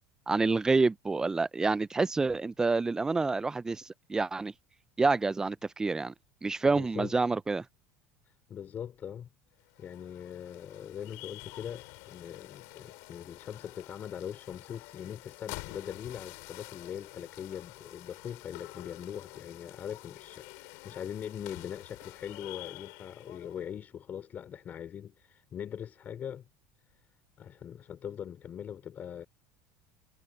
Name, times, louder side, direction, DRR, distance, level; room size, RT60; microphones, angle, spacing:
voice 1, 0.3-3.8 4.1-4.5 5.0-6.1 6.4-7.6, right 3 dB, 10° right, 0.4 m, -28 dB
voice 2, 6.6-7.1 8.5-9.3 9.8-26.5 27.4-29.2, left 9 dB, 35° left, 5.0 m, -41 dB
sound 1, 9.6-23.7, left 27 dB, 70° left, 4.5 m, -48 dB
supercardioid pair, 130°, 5 cm